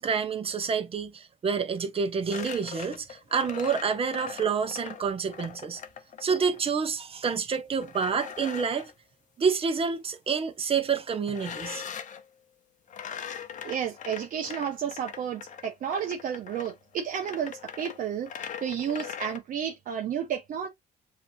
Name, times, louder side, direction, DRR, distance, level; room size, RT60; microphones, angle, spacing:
voice 1, 0.0-5.8 6.2-8.9 9.4-11.8, right 6 dB, 35° right, 1.1 m, -28 dB
sound 1, 2.3-6.6 7.8-8.9 11.3-12.2 12.9-19.4, left 8 dB, 45° left, 0.9 m, -41 dB
voice 2, 13.6-20.7, right 8 dB, 55° right, 0.8 m, -32 dB
7.5 x 2.9 x 2.3 m
cardioid pair, 110°, 17 cm